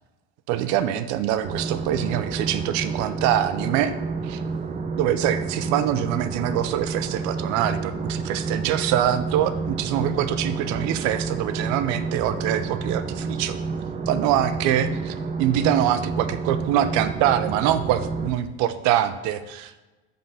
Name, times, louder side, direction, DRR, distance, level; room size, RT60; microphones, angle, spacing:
voice 1, 0.5-3.9 4.2-4.4 5.0-13.6 14.1-19.8, right 11 dB, 60° right, 12 dB, 0.7 m, -24 dB
sound 1, 1.4-18.3, right 4 dB, 25° right, 0.7 m, -30 dB
7.6 x 3.9 x 5.7 m, 1.1 s
supercardioid pair, 105°, 32 cm